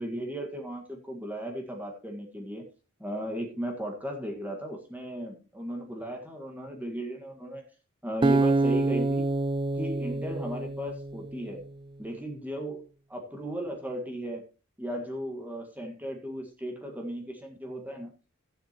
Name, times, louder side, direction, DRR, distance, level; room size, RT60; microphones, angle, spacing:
voice 1, 0.0-2.7 3.0-7.6 8.0-9.3 9.7-11.7 12.0-12.8 13.1-14.5 14.8-18.1, right 1 dB, 10° right, 2 dB, 1.8 m, -36 dB
Acoustic guitar, 8.2-11.4, right 2 dB, 25° right, 0.5 m, -26 dB
15.5 x 8.0 x 3.0 m, 0.33 s
head